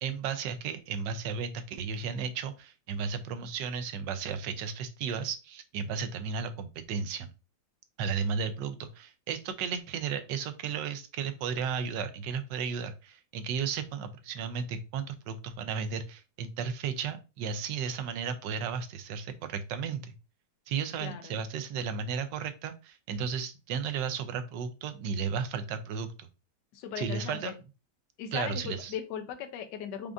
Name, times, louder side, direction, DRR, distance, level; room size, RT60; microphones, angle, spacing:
voice 1, 0.0-7.3 8.0-20.1 20.7-26.3 27.0-27.5 28.3-28.9, right 6 dB, 80° right, 10 dB, 1.3 m, -34 dB
voice 2, 21.0-21.4 26.7-27.5 28.2-30.1, left 8 dB, 75° left, 8 dB, 1.3 m, -38 dB
5.2 x 2.5 x 3.4 m, 0.30 s
omnidirectional pair, 1.9 m